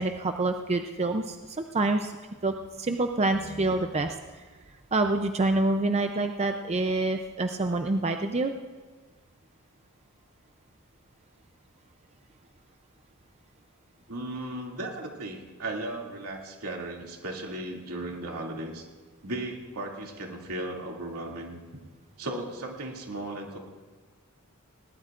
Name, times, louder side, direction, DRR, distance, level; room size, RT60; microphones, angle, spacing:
voice 1, 0.0-2.1 2.4-4.2 4.9-8.5, right 2 dB, 30° right, 6 dB, 0.5 m, -27 dB
voice 2, 14.1-18.9 19.2-21.6 22.2-23.6, right 1 dB, 80° right, 0 dB, 2.5 m, -36 dB
21.0 x 18.5 x 2.5 m, 1.4 s
head